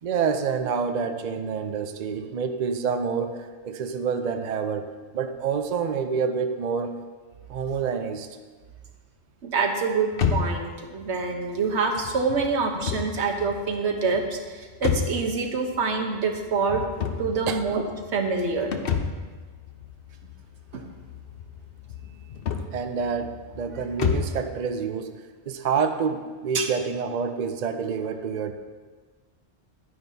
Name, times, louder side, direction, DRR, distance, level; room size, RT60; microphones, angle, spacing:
voice 1, 0.0-6.9 7.5-8.3 17.5-17.6 22.7-28.5, right 6 dB, 55° right, 7 dB, 0.5 m, -28 dB
voice 2, 9.4-16.8 17.2-17.8 18.1-18.7 20.7-20.8 26.5-26.7, right 4 dB, 70° right, 2 dB, 1.3 m, -26 dB
sound 1, 10.1-24.5, left 6 dB, 60° left, 0.8 m, -32 dB
11.0 x 9.4 x 2.7 m, 1.4 s
omnidirectional pair, 1.2 m